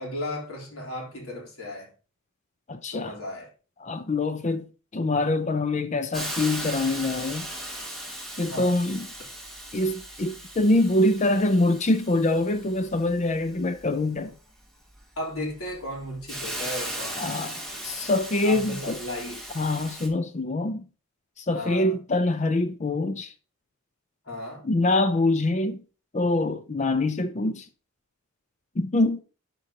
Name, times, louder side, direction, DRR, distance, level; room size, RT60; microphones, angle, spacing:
voice 1, 0.0-1.9 2.9-3.5 8.4-8.8 15.2-17.4 18.4-19.4 21.5-22.0 24.3-24.6, left 1 dB, 85° left, 3.5 m, -35 dB
voice 2, 2.7-3.1 3.8-4.7 4.9-7.5 8.4-9.1 9.7-14.3 17.2-17.5 17.8-19.0 19.6-20.8 21.4-23.3 24.6-25.8 26.1-27.7 28.8-29.2, left 2 dB, 35° left, 0.5 m, -24 dB
Hiss, 6.1-20.1, right 1 dB, ahead, 1.9 m, -38 dB
12.0 x 5.2 x 2.9 m
head